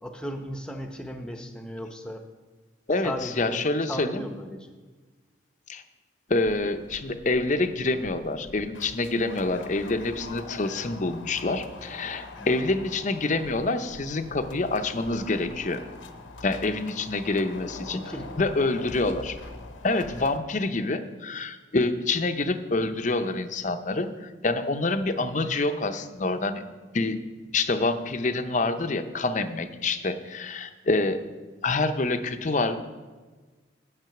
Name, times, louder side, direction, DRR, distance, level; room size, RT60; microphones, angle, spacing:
voice 1, 0.0-2.2 3.0-4.7 12.3-12.5 17.8-18.4, equal, 5° left, 5 dB, 0.8 m, -36 dB
voice 2, 2.9-4.2 5.7-5.8 6.3-15.8 16.4-18.0 18.4-19.4 19.8-26.6 26.9-27.2 27.5-31.3 31.6-32.8, left 2 dB, 40° left, 9 dB, 0.6 m, -27 dB
sound 1, 6.4-20.4, left 3 dB, 70° left, 0.8 m, -44 dB
9.1 x 8.0 x 5.8 m, 1.3 s
head